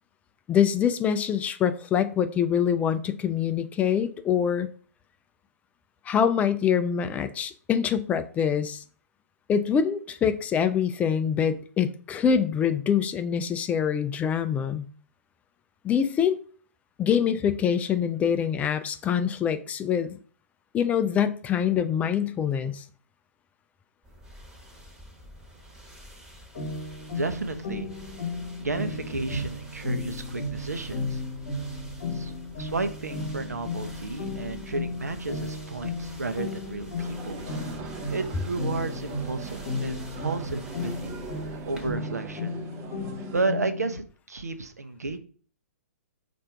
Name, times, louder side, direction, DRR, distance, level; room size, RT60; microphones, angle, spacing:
voice 1, 0.5-4.7 6.1-8.8 9.5-14.8 15.8-16.4 17.0-20.1 20.7-22.8, left 8 dB, 15° left, 11 dB, 0.3 m, -25 dB
sound 1, 24.0-42.0, equal, 10° right, 1.1 m, -48 dB
sound 2, 26.5-44.0, left 2 dB, 60° left, 0.9 m, -34 dB
voice 2, 27.1-27.9 28.6-31.2 32.1-37.4 38.1-41.2 41.7-42.5 43.3-45.2, right 3 dB, 90° right, 9 dB, 0.7 m, -32 dB
sound 3, 37.0-43.4, right 5 dB, 30° right, 0.6 m, -42 dB
4.3 x 2.6 x 4.5 m, 0.43 s
hypercardioid pair, 125°, 8 cm